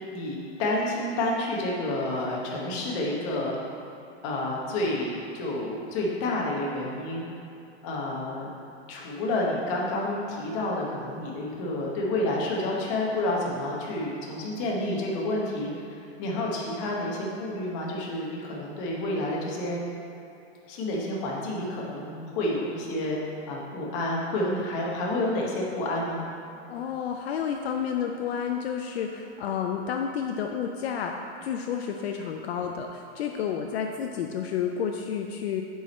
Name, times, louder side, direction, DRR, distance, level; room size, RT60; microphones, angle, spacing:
voice 1, 0.1-3.6 4.2-7.2 7.8-8.5 8.9-19.8 20.7-26.2, left 1 dB, 25° left, -3 dB, 0.9 m, -29 dB
voice 2, 26.7-31.1 31.4-35.6, left 7 dB, 65° left, 3 dB, 0.5 m, -30 dB
6.9 x 4.8 x 4.2 m, 2.7 s
supercardioid pair, 175°, 34 cm